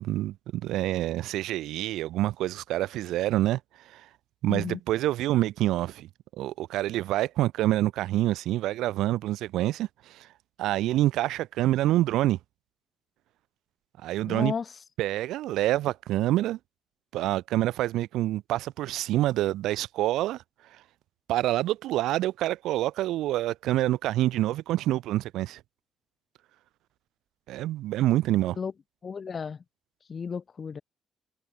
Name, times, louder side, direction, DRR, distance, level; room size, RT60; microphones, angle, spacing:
voice 1, 0.0-3.6 3.9-4.1 4.4-6.1 6.4-10.3 10.6-12.4 14.0-14.5 15.0-16.6 17.1-20.4 21.3-25.6 27.5-28.6, right 15 dB, 90° right, 3.9 m, -27 dB
voice 2, 4.5-4.8 14.3-14.7 28.6-28.7 29.0-29.6 30.1-30.8, left 6 dB, 45° left, 6.8 m, -33 dB
cardioid pair, 90°, 0 cm